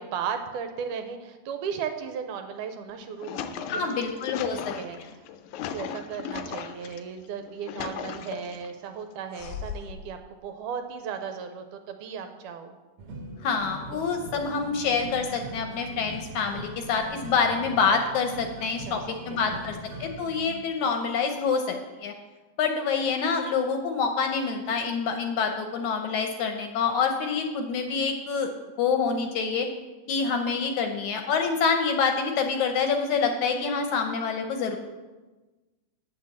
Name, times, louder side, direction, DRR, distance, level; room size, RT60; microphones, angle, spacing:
voice 1, 0.0-4.1 4.4-5.0 5.7-12.8 13.9-14.2 18.9-19.0 19.3-19.7, right 7 dB, 75° right, 7 dB, 2.1 m, -36 dB
sound 1, 2.9-7.0 7.4-8.7 9.3-10.1, left 8 dB, 90° left, 2.4 m, -37 dB
voice 2, 3.7-4.7 13.4-19.0 19.3-22.1 22.6-28.5 28.8-29.7 30.1-34.8, left 5 dB, 75° left, 4 dB, 1.9 m, -26 dB
sound 2, 13.0-20.6, right 1 dB, 60° right, 1.7 m, -40 dB
8.8 x 6.9 x 7.1 m, 1.2 s
omnidirectional pair, 3.9 m